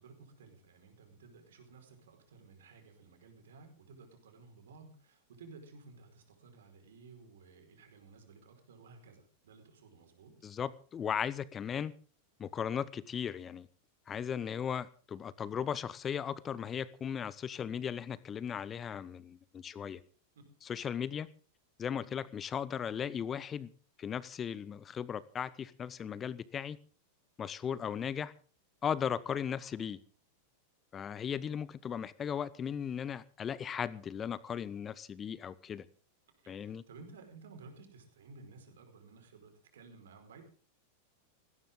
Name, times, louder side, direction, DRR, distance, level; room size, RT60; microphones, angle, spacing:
voice 1, 0.0-10.3 20.3-20.4 36.4-40.4, right 4 dB, 60° right, 5 dB, 5.1 m, -55 dB
voice 2, 10.4-11.9 12.4-13.7 14.1-20.0 20.6-21.3 21.8-23.7 24.0-26.8 27.4-28.3 28.8-30.0 30.9-35.9 36.5-36.8, left 8 dB, 25° left, 20 dB, 0.8 m, -37 dB
18.5 x 17.5 x 3.8 m, 0.40 s
figure-of-eight pair, 90°, 0 cm